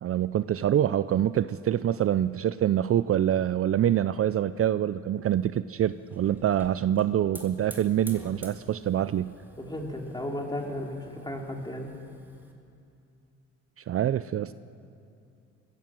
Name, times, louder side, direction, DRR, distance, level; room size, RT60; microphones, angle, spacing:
voice 1, 0.0-9.3 13.9-14.5, right 11 dB, 50° right, 14 dB, 0.5 m, -25 dB
Hiss / Fire, 5.7-12.5, right 1 dB, 5° right, 3.2 m, -50 dB
voice 2, 9.6-11.9, left 1 dB, 15° left, 0 dB, 3.7 m, -34 dB
22.5 x 16.0 x 7.8 m, 2.6 s
cardioid pair, 90°, 30 cm